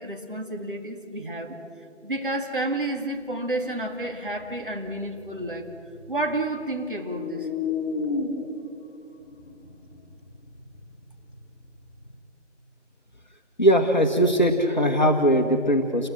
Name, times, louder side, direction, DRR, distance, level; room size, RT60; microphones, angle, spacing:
voice 1, 0.0-1.6 2.0-5.7 6.1-7.5, right 1 dB, 45° right, 3 dB, 2.3 m, -30 dB
sound 1, 4.0-6.6 6.9-12.2, left 4 dB, 20° left, 2.9 m, -34 dB
voice 2, 13.6-16.1, equal, 40° left, 1 dB, 1.5 m, -20 dB
29.5 x 21.0 x 6.2 m, 2.7 s
figure-of-eight pair, 170°, 36 cm